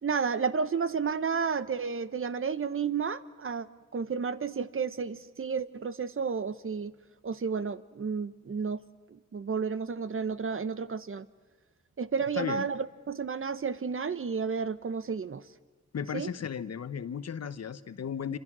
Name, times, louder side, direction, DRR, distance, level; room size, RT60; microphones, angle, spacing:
voice 1, 0.0-3.7 3.9-6.9 7.2-8.8 9.1-11.3 12.0-15.5 16.1-16.3, right 5 dB, 45° right, 14 dB, 1.0 m, -31 dB
voice 2, 12.3-12.7 15.9-18.4, left 7 dB, 60° left, 13 dB, 1.0 m, -35 dB
27.5 x 26.5 x 6.1 m, 1.3 s
cardioid pair, 80°, 29 cm